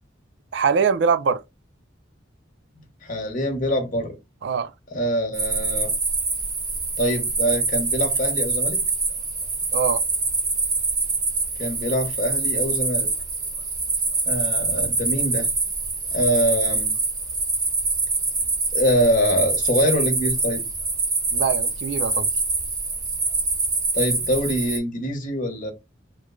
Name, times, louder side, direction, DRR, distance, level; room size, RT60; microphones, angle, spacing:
voice 1, 0.5-1.4 4.4-4.7 9.7-10.0 21.3-22.3, right 6 dB, 65° right, 0.4 m, -22 dB
voice 2, 3.0-4.2 4.9-5.9 7.0-8.8 11.6-13.1 14.3-15.5 16.1-16.9 18.7-20.6 23.9-25.7, equal, 45° left, 0.9 m, -24 dB
sound 1, 5.3-24.8, right 3 dB, 20° right, 0.7 m, -25 dB
3.1 x 2.0 x 3.6 m
head